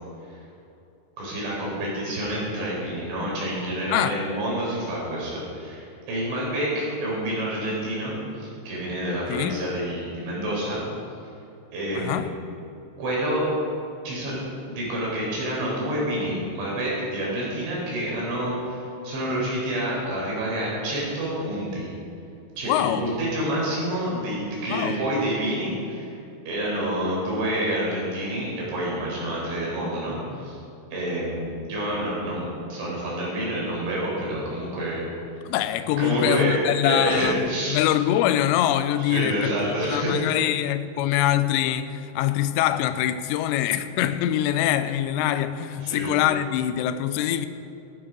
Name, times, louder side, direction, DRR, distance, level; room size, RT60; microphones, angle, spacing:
voice 1, 1.2-10.8 11.7-12.3 13.0-13.4 14.1-14.4 14.7-21.9 22.6-26.1 26.5-30.6 30.9-35.1 36.0-37.8 39.0-40.2 45.8-46.3, right 1 dB, 85° right, 6.9 m, -28 dB
voice 2, 9.3-9.6 12.0-12.4 22.7-23.1 24.7-25.0 35.5-39.5 39.9-47.5, left 12 dB, 80° left, 2.7 m, -24 dB
15.0 x 13.5 x 5.3 m
omnidirectional pair, 5.3 m